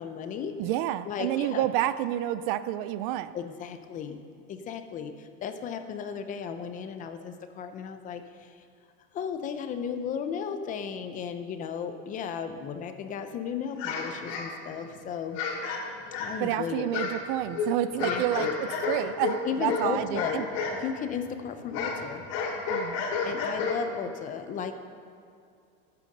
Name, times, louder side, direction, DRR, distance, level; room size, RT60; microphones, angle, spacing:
voice 1, 0.0-0.5 1.1-1.7 3.3-4.2 4.5-8.6 9.1-15.4 16.2-16.9 17.9-18.5 19.4-20.4 20.8-22.2 23.2-24.7, left 7 dB, 25° left, 8 dB, 0.6 m, -35 dB
voice 2, 0.6-3.3 16.4-20.4 22.7-23.2, right 13 dB, 55° right, 15 dB, 0.4 m, -29 dB
sound 1, 13.8-14.9 15.3-16.5 16.9-20.8 21.1-24.1, left 4 dB, 50° left, 2.6 m, -31 dB
13.0 x 8.5 x 6.6 m, 2.4 s
cardioid pair, 170°, 33 cm